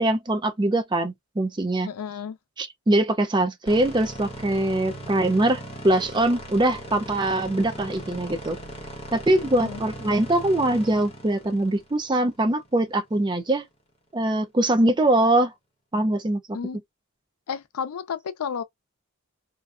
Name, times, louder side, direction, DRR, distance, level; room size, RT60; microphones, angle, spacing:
voice 1, 0.0-1.9 2.6-8.6 9.1-13.6 14.1-15.5 15.9-16.4, right 1 dB, 20° right, 0.4 m, -22 dB
voice 2, 1.8-2.4 9.6-9.8 16.5-16.8 17.5-18.6, left 7 dB, 90° left, 0.4 m, -32 dB
sound 1, 3.7-12.8, right 1 dB, 25° left, 1.0 m, -39 dB
2.5 x 2.3 x 2.3 m
head